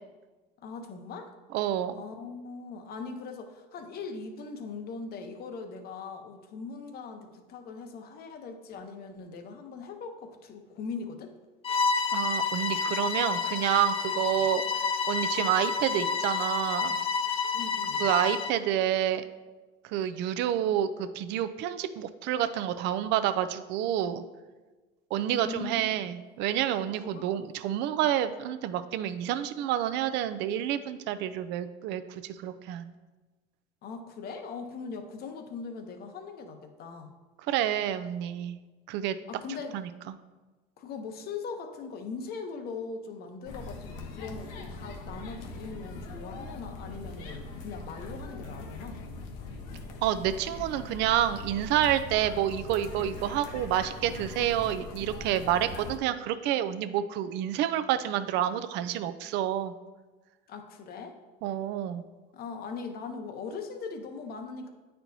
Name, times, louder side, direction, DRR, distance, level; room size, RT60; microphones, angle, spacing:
voice 1, 0.6-1.3 1.9-11.3 14.2-14.5 17.5-18.1 25.2-25.9 27.0-27.5 33.8-37.1 39.3-39.8 40.8-49.0 60.5-61.2 62.3-64.7, left 5 dB, 50° left, 6 dB, 0.8 m, -40 dB
voice 2, 1.5-2.0 12.1-14.6 15.1-17.0 18.0-19.2 19.8-24.2 25.1-32.9 37.5-38.6 38.9-39.2 39.7-39.9 50.0-59.7 61.4-62.0, right 11 dB, 60° right, 11 dB, 0.5 m, -28 dB
Bowed string instrument, 11.6-18.6, left 5 dB, 25° left, 0.4 m, -29 dB
sound 1, 43.4-56.0, left 2 dB, 80° left, 1.0 m, -41 dB
9.0 x 4.4 x 2.7 m, 1.2 s
supercardioid pair, 100°, 21 cm